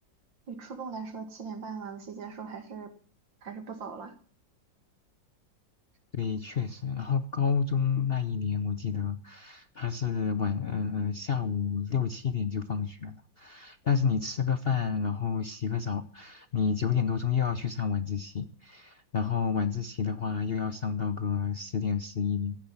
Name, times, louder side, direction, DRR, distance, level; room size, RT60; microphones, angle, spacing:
voice 1, 0.5-2.9 3.4-4.1, right 5 dB, 90° right, 7 dB, 2.9 m, -40 dB
voice 2, 6.1-22.6, left 6 dB, 55° left, 11 dB, 0.7 m, -30 dB
15.0 x 10.5 x 7.2 m, 0.42 s
omnidirectional pair, 2.0 m